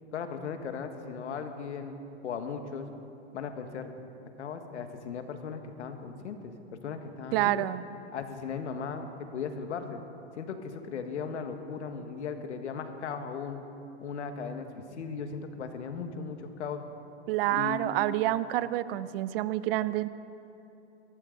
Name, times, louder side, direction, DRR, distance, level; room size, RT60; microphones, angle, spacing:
voice 1, 0.1-2.0 2.2-2.9 3.3-3.9 4.4-7.7 8.1-10.0 10.4-13.6 14.0-16.8 17.5-18.0, left 6 dB, 85° left, 7 dB, 1.6 m, -37 dB
voice 2, 7.3-7.8 17.3-20.1, right 15 dB, 55° right, 16 dB, 0.6 m, -28 dB
22.5 x 14.0 x 3.9 m, 2.8 s
hypercardioid pair, 120°, 34 cm